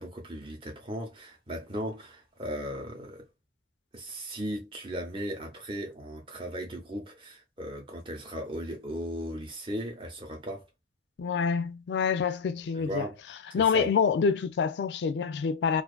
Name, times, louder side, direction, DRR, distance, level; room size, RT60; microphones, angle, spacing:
voice 1, 0.0-3.3 3.9-10.6 12.8-13.2 13.6-13.9, equal, 30° right, 0.7 m, -37 dB
voice 2, 11.2-13.1 13.5-15.8, left 6 dB, 80° left, 0.3 m, -26 dB
2.5 x 2.3 x 2.3 m
head